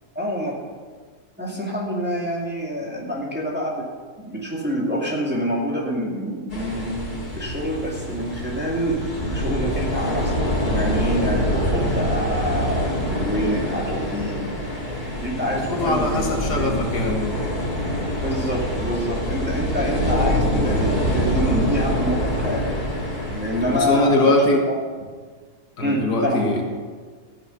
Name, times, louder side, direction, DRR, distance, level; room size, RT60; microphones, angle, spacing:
voice 1, 0.1-0.6 1.4-3.9 4.2-9.0 9.3-10.4 10.7-14.4 15.2-16.9 18.2-22.8 23.3-24.4 25.8-26.4, equal, 5° right, -3 dB, 2.3 m, -27 dB
sound 1, 6.5-23.8, equal, 30° left, 2.7 m, -25 dB
voice 2, 15.5-17.4 23.7-24.6 25.8-26.6, left 1 dB, 80° left, 1 dB, 2.2 m, -21 dB
13.5 x 8.9 x 5.6 m, 1.5 s
omnidirectional pair, 1.7 m